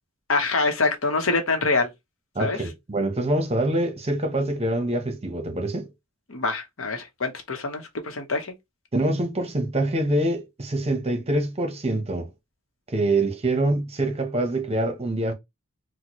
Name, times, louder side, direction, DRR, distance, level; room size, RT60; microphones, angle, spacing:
voice 1, 0.3-1.9 2.4-2.6 6.3-8.5, left 3 dB, 70° left, 0.9 m, -25 dB
voice 2, 2.3-5.9 8.9-12.3 12.9-15.3, right 1 dB, 30° right, 0.8 m, -25 dB
4.1 x 2.1 x 3.0 m
head